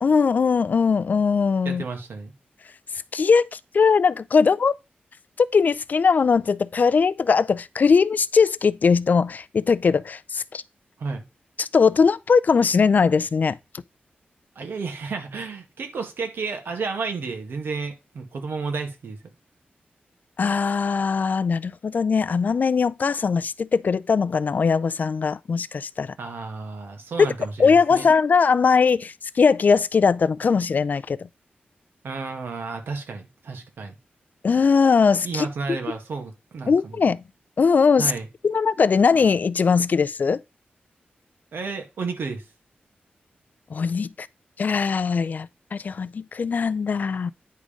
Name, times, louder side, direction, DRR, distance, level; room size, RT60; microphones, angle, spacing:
voice 1, 0.0-1.8 3.1-4.7 5.5-10.6 11.6-13.6 20.4-26.1 27.2-27.3 27.6-31.2 34.4-35.5 36.7-37.2 37.6-38.1 38.4-40.4 43.7-44.3 44.6-47.3, left 5 dB, 50° left, 0.4 m, -20 dB
voice 2, 1.6-2.3 11.0-11.2 14.6-19.2 26.2-28.1 32.0-34.0 35.2-37.1 38.0-38.3 41.5-42.4, right 4 dB, 80° right, 1.9 m, -32 dB
9.5 x 3.7 x 5.1 m
wide cardioid pair, 120°, 4 cm